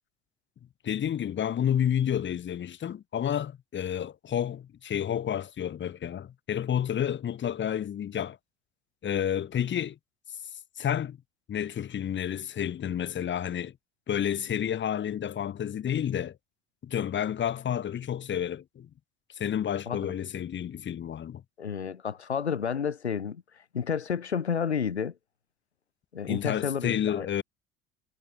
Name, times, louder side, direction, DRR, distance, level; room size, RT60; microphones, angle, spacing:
voice 1, 0.8-8.4 9.0-10.0 10.8-11.2 11.5-13.7 14.1-16.4 16.8-18.9 19.4-21.4 26.3-27.4, left 9 dB, 35° left, 2.2 m, -30 dB
voice 2, 21.6-23.4 23.7-25.1 26.1-27.4, left 7 dB, 80° left, 1.5 m, -31 dB
figure-of-eight pair, 60°, 32 cm